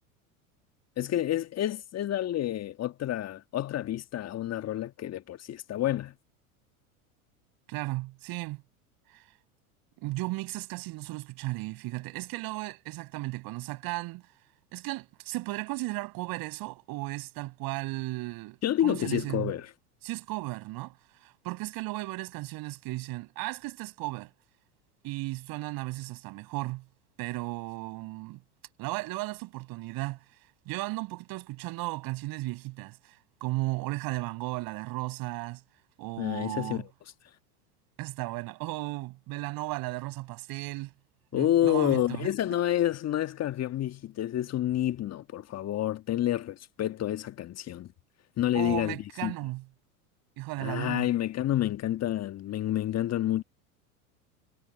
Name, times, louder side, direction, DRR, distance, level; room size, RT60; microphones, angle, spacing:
voice 1, 1.0-6.1 18.6-19.7 36.2-36.9 41.3-47.9 48.4-49.3 50.6-53.4, left 12 dB, 35° left, 1.6 m, -29 dB
voice 2, 7.7-8.6 9.1-9.2 10.0-14.2 14.7-18.6 18.8-19.5 20.0-21.0 21.2-24.3 25.0-26.9 27.2-28.4 28.8-30.2 30.7-35.6 36.0-36.8 38.0-40.9 41.3-42.3 48.5-49.6 50.4-51.1, right 21 dB, 55° right, 5.9 m, -35 dB
hypercardioid pair, 90°, 44 cm